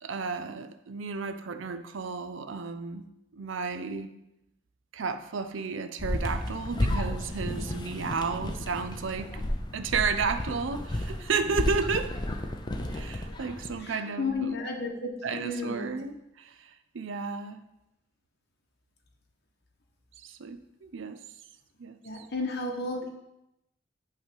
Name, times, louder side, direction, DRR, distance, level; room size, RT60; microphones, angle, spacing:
voice 1, 0.0-3.0 3.3-4.1 4.9-9.4 9.7-12.2 12.9-14.6 15.2-16.7 16.9-17.6 20.2-21.2 21.8-22.3, right 5 dB, 75° right, 9 dB, 0.5 m, -32 dB
sound 1, 6.0-13.8, left 1 dB, 20° left, 0.6 m, -33 dB
voice 2, 13.8-15.9 22.0-23.1, left 3 dB, 55° left, 0 dB, 1.1 m, -33 dB
8.7 x 3.3 x 5.3 m, 0.88 s
head